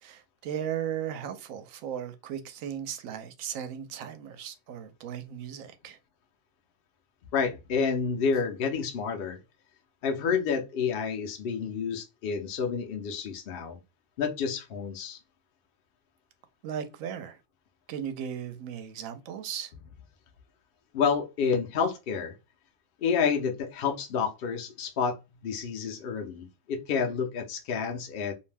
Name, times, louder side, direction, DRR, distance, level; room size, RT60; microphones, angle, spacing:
voice 1, 0.0-6.0 16.6-17.4 17.9-19.7, right 9 dB, 80° right, 1.0 m, -36 dB
voice 2, 7.3-9.4 10.0-13.8 14.2-15.2 20.9-22.3 23.0-25.2 25.4-28.3, left 6 dB, 55° left, 0.7 m, -29 dB
2.6 x 2.1 x 3.2 m
omnidirectional pair, 1.4 m